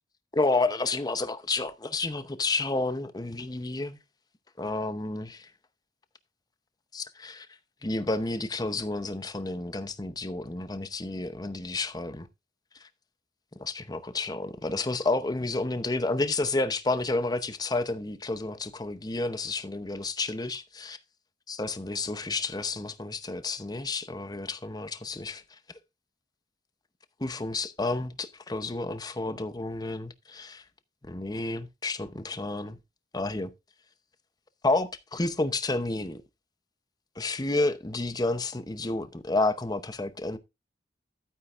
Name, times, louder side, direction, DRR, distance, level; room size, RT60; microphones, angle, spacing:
voice 1, 0.3-4.0 4.6-5.4 6.9-7.5 7.8-12.3 13.6-21.0 21.5-25.4 27.2-30.6 31.0-32.8 33.1-33.5 34.6-36.2 37.2-40.4, left 2 dB, 20° left, 0.8 m, -30 dB
12.0 x 9.3 x 2.5 m
head